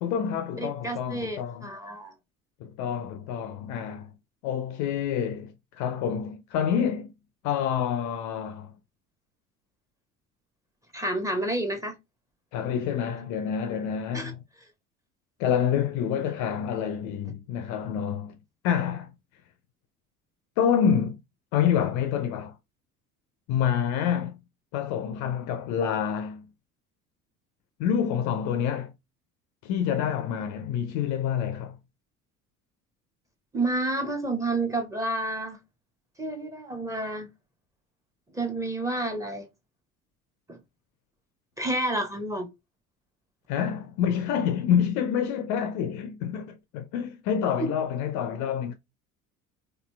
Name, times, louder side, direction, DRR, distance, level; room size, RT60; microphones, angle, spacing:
voice 1, 0.0-1.7 2.6-4.1 4.4-7.1 7.4-8.7 12.5-14.4 15.4-18.3 18.6-19.1 20.6-21.2 21.5-22.5 23.5-24.4 24.7-26.5 27.8-28.9 29.6-31.8 43.5-48.7, left 8 dB, 45° left, 0.4 m, -27 dB
voice 2, 0.6-2.1 10.9-11.9 14.1-14.3 33.5-35.6 36.2-37.3 38.3-39.4 40.5-40.6 41.6-42.5 47.6-47.7, right 2 dB, 5° right, 0.8 m, -29 dB
4.1 x 2.6 x 2.2 m
figure-of-eight pair, 60°, 43 cm